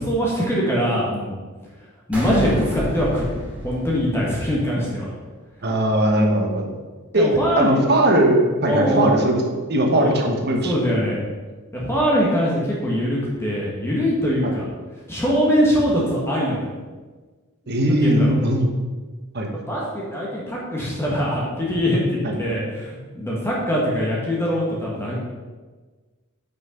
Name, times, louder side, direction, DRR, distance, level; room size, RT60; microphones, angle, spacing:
voice 1, 0.0-1.3 2.1-3.2 3.6-5.0 7.1-7.8 8.7-9.1 10.0-10.2 10.6-11.2 11.7-14.6 15.1-16.8 17.8-18.3 19.5-25.1, equal, 10° left, -5 dB, 1.5 m, -22 dB
sound 1, 2.1-4.7, equal, 5° right, 2.2 m, -30 dB
voice 2, 5.6-6.7 7.1-7.3 7.6-9.4 9.7-10.7 14.4-14.5 17.7-18.7 19.3-19.5 22.2-22.3, right 1 dB, 50° right, 2 dB, 1.3 m, -19 dB
6.2 x 5.7 x 5.8 m, 1.3 s
head